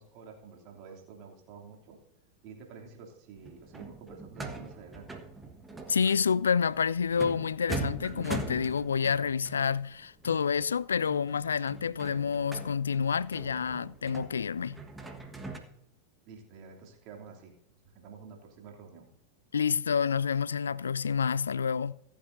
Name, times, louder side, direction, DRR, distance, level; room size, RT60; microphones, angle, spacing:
voice 1, 0.0-2.0 2.4-5.1 16.2-17.5 17.9-19.1, right 5 dB, 40° right, 2.8 m, -49 dB
sound 1, 3.4-15.6, right 2 dB, 10° right, 1.4 m, -42 dB
voice 2, 5.9-14.8 19.5-21.9, left 6 dB, 70° left, 0.3 m, -28 dB
25.5 x 8.7 x 2.7 m
figure-of-eight pair, 90°, 0 cm